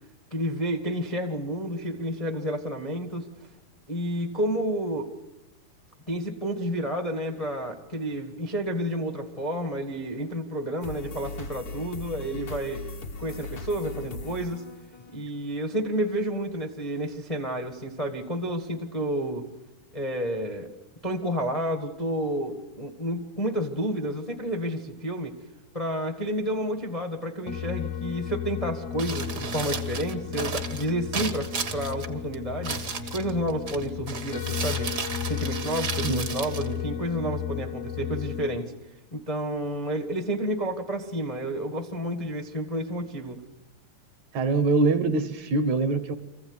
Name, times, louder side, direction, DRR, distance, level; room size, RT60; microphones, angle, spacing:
voice 1, 0.3-3.3 3.9-5.1 6.1-12.8 13.2-14.6 15.1-19.5 19.9-20.7 21.0-25.3 25.7-34.9 35.3-38.7 39.1-43.4, equal, 40° left, 3 dB, 0.5 m, -30 dB
sound 1, 10.8-15.5, left 3 dB, 90° left, 0.8 m, -39 dB
sound 2, 27.5-38.6, left 10 dB, 75° left, 1.5 m, -34 dB
Crumpling crinkling, 28.8-37.4, right 5 dB, 45° right, 1.1 m, -35 dB
voice 2, 44.3-46.1, right 3 dB, 65° right, 9 dB, 2.3 m, -23 dB
25.0 x 15.5 x 9.8 m, 1.0 s
omnidirectional pair, 4.0 m